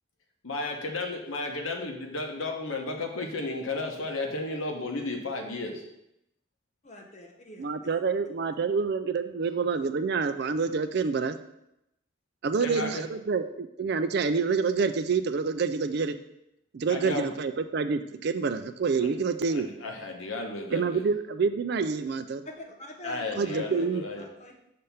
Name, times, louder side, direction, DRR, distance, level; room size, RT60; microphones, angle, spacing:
voice 1, 0.4-5.8 12.6-12.9 16.9-17.2 19.0-19.1 19.5-21.1 23.0-24.2, left 2 dB, 80° left, 2 dB, 1.1 m, -33 dB
voice 2, 6.8-7.7 22.5-24.6, left 2 dB, 35° left, 1 dB, 0.9 m, -44 dB
voice 3, 7.6-11.4 12.4-16.1 16.7-19.7 20.7-22.4 23.4-24.0, right 5 dB, 50° right, 10 dB, 0.4 m, -27 dB
6.6 x 3.5 x 5.6 m, 0.83 s
head